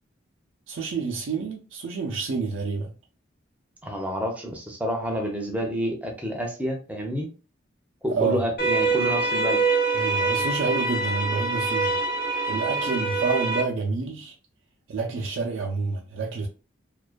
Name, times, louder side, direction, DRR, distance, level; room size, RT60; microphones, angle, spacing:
voice 1, 0.7-2.9 8.2-8.4 9.9-12.0 12.5-14.3 14.9-16.5, right 4 dB, 80° right, 0.4 m, -28 dB
voice 2, 3.8-7.3 8.0-9.6, equal, 5° right, 0.5 m, -29 dB
sound 1, 8.6-13.6, right 3 dB, 45° left, 0.6 m, -25 dB
2.3 x 2.2 x 2.4 m
head